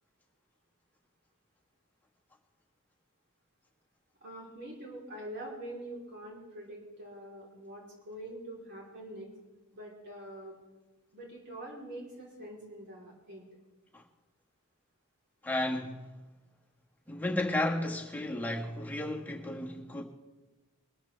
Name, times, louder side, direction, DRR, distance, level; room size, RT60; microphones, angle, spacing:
voice 1, 4.2-9.3 9.7-10.5 11.1-13.5, right 1 dB, 50° right, 3.5 m, -45 dB
voice 2, 15.4-16.0 17.1-20.0, left 1 dB, 10° left, 1.4 m, -33 dB
22.5 x 13.0 x 3.3 m
head